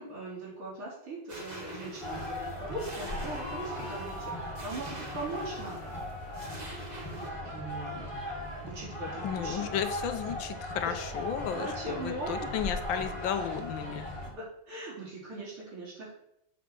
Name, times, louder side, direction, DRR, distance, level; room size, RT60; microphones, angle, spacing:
voice 1, 0.0-6.0 7.1-8.1 8.7-9.8 10.8-11.0 11.5-12.5 14.3-16.1, right 2 dB, 85° right, -7 dB, 5.5 m, -40 dB
sound 1, 1.3-7.3, right 1 dB, 25° right, 1.1 m, -45 dB
sound 2, 2.0-14.3, left 1 dB, 15° left, 2.1 m, -38 dB
voice 2, 9.2-14.1, left 9 dB, 70° left, 8 dB, 1.4 m, -34 dB
7.7 x 6.0 x 6.7 m, 0.79 s
omnidirectional pair, 2.4 m